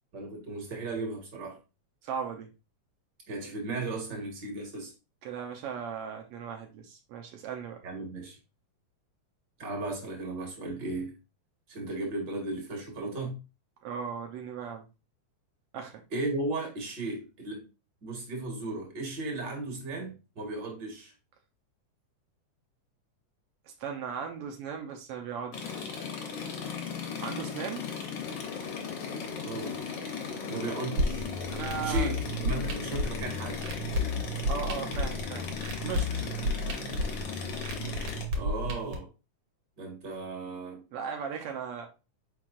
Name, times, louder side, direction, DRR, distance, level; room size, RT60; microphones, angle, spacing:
voice 1, 0.1-1.6 3.3-4.9 7.8-8.4 9.6-11.1 11.7-13.4 16.1-17.6 18.0-21.1 29.4-29.8 30.5-31.3 31.8-33.7 38.3-39.1 39.8-40.8, right 2 dB, 45° right, 1.7 m, -35 dB
voice 2, 2.0-2.5 5.2-7.8 13.8-14.9 15.7-16.0 23.7-26.3 27.2-27.8 31.5-32.1 34.5-35.5 35.8-36.2 40.9-41.9, right 6 dB, 85° right, 1.3 m, -37 dB
sound 1, 25.5-38.2, left 6 dB, 80° left, 1.0 m, -37 dB
sound 2, 31.0-39.0, left 1 dB, 65° right, 1.8 m, -32 dB
4.6 x 4.5 x 2.4 m
omnidirectional pair, 3.5 m